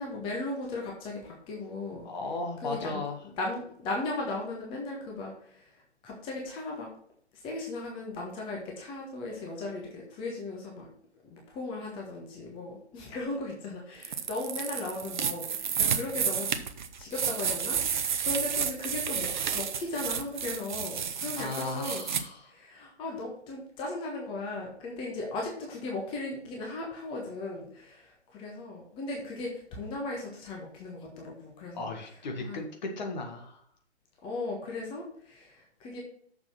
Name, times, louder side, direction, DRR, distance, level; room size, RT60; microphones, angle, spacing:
voice 1, 0.0-2.1 2.6-3.0 3.4-6.9 7.4-10.9 11.2-16.6 17.0-22.0 22.4-31.9 32.4-32.6 34.2-36.0, left 2 dB, 15° left, -1 dB, 1.4 m, -37 dB
voice 2, 2.0-3.2 21.4-22.5 31.7-33.6, left 3 dB, 40° left, 4 dB, 1.8 m, -36 dB
sound 1, 14.0-22.2, right 7 dB, 45° right, 0.8 m, -31 dB
6.8 x 6.0 x 5.9 m, 0.63 s
figure-of-eight pair, 135°, 35 cm